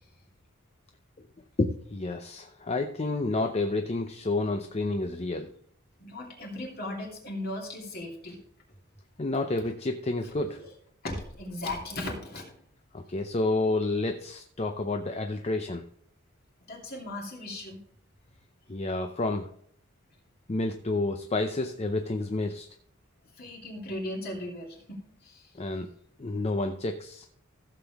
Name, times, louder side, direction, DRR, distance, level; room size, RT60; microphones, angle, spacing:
voice 1, 1.6-5.5 9.2-10.6 12.9-15.8 18.7-19.5 20.5-22.7 25.6-25.9 26.2-27.3, left 2 dB, 30° left, 6 dB, 0.6 m, -29 dB
voice 2, 6.0-8.4 11.0-12.4 16.7-17.8 23.4-25.4, left 1 dB, 50° left, -1 dB, 2.8 m, -37 dB
15.0 x 7.1 x 3.5 m, 0.65 s
head